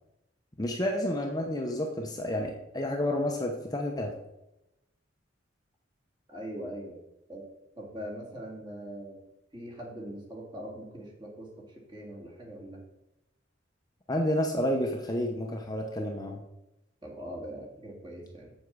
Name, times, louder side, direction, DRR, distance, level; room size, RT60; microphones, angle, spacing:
voice 1, 0.6-4.1 14.1-16.4, left 1 dB, 20° left, 1 dB, 0.8 m, -30 dB
voice 2, 6.3-7.0 7.3-7.4 7.8-9.2 9.5-12.8 17.0-18.5, equal, 25° right, -2 dB, 2.2 m, -41 dB
7.4 x 7.1 x 4.8 m, 0.89 s
head